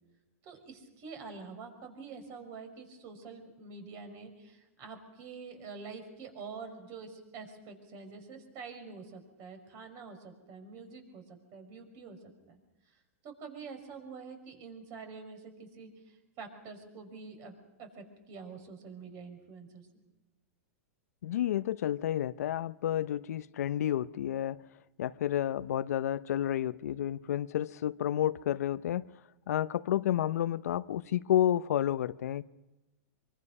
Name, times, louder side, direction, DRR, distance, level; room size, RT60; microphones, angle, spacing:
voice 1, 0.4-12.6 12.9-20.0, right 4 dB, 40° right, 5.9 m, -47 dB
voice 2, 21.2-24.6 25.0-29.1 29.5-32.4, left 11 dB, 80° left, 0.7 m, -30 dB
25.5 x 24.5 x 5.5 m
hypercardioid pair, 140°, 8 cm